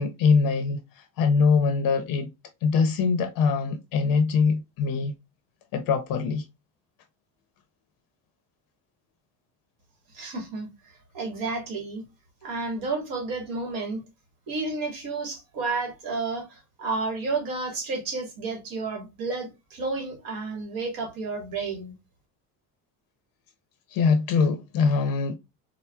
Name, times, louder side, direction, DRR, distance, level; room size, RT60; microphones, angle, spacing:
voice 1, 0.0-2.3 2.6-5.1 5.7-6.4 23.9-25.4, left 5 dB, 60° left, 0.6 m, -23 dB
voice 2, 10.1-12.0 12.4-14.0 14.5-21.9, right 3 dB, 60° right, 1.3 m, -31 dB
4.3 x 2.0 x 2.2 m
cardioid pair, 165°, 39 cm